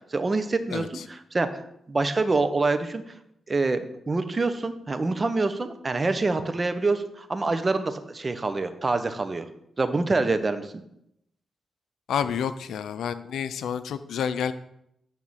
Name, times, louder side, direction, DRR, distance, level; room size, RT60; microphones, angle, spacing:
voice 1, 0.1-1.6 1.9-3.0 3.5-9.5 9.8-10.8, right 3 dB, 35° right, 10 dB, 1.1 m, -26 dB
voice 2, 0.7-1.0 12.1-14.5, left 8 dB, 80° left, 13 dB, 0.5 m, -29 dB
11.0 x 3.8 x 7.4 m, 0.78 s
supercardioid pair, 50°, 0 cm